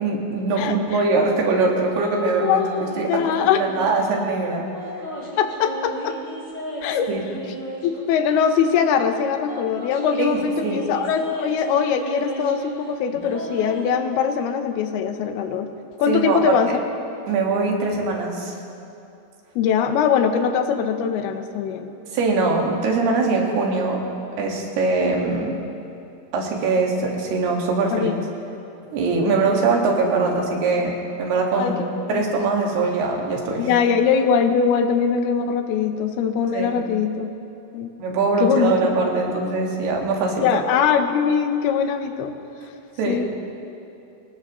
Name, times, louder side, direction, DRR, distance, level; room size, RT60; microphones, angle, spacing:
voice 1, 0.0-4.6 7.1-7.2 10.2-10.8 16.1-16.6 17.3-18.5 22.1-24.0 24.4-25.6 26.3-28.1 28.9-31.8 32.1-33.7 36.5-36.7 38.0-40.6 43.0-43.2, right 3 dB, 85° right, 0 dB, 3.9 m, -22 dB
voice 2, 0.6-1.0 2.4-3.6 5.4-6.2 6.8-7.1 7.8-15.7 16.0-16.7 19.6-21.9 27.9-28.2 29.3-29.5 31.6-32.2 33.6-37.3 37.7-37.9 38.4-38.9 39.3-39.4 40.4-42.4 43.1-43.3, left 7 dB, 80° left, 7 dB, 2.8 m, -22 dB
sound 1, 1.9-3.1 3.4-4.2 4.7-8.9 9.5-12.8 13.1-13.9, equal, 25° left, 2.4 m, -34 dB
24.0 x 18.0 x 3.1 m, 2.8 s
omnidirectional pair, 4.5 m